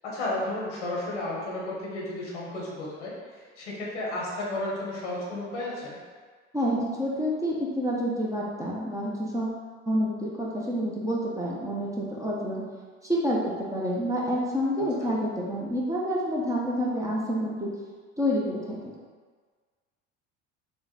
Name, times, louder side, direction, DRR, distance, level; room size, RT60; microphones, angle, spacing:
voice 1, 0.0-6.0 14.8-15.1, left 1 dB, 85° left, -5 dB, 1.3 m, -33 dB
voice 2, 6.5-12.6 13.0-17.7 18.2-19.0, equal, 10° right, -5 dB, 0.9 m, -28 dB
3.8 x 2.5 x 3.9 m, 1.5 s
hypercardioid pair, 70°, 35 cm